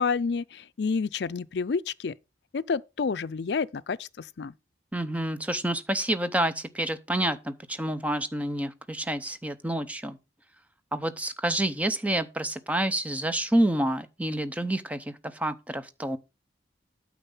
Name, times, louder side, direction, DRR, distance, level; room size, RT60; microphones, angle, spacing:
voice 1, 0.0-2.1 2.5-4.5, left 5 dB, 70° left, 0.5 m, -29 dB
voice 2, 4.9-10.2 10.9-16.2, right 1 dB, 10° right, 0.7 m, -28 dB
9.1 x 6.0 x 5.5 m
head